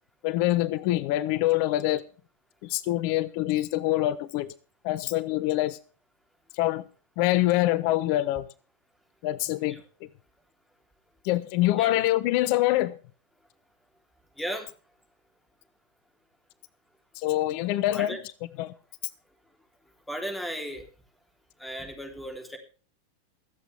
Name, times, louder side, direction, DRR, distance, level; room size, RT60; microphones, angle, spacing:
voice 1, 0.2-2.0 2.6-4.5 4.8-5.8 6.5-6.8 7.2-8.5 9.2-9.7 11.2-12.9 17.2-18.2 18.6-18.7, left 16 dB, 45° left, 0.7 m, -25 dB
voice 2, 14.4-14.7 17.9-18.2 20.1-20.8 21.6-22.6, equal, 5° left, 3.4 m, -35 dB
24.0 x 8.1 x 3.4 m
figure-of-eight pair, 90°, 0 cm